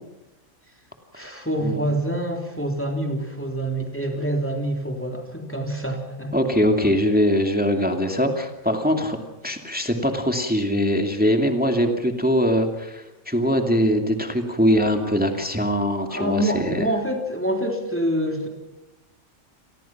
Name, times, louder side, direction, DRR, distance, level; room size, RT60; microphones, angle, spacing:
voice 1, 1.1-6.4 16.1-18.5, right 1 dB, 10° left, 2 dB, 3.5 m, -26 dB
voice 2, 6.3-9.2 9.4-16.8, equal, 5° right, 4 dB, 2.3 m, -22 dB
29.5 x 22.0 x 5.9 m, 0.98 s
omnidirectional pair, 1.4 m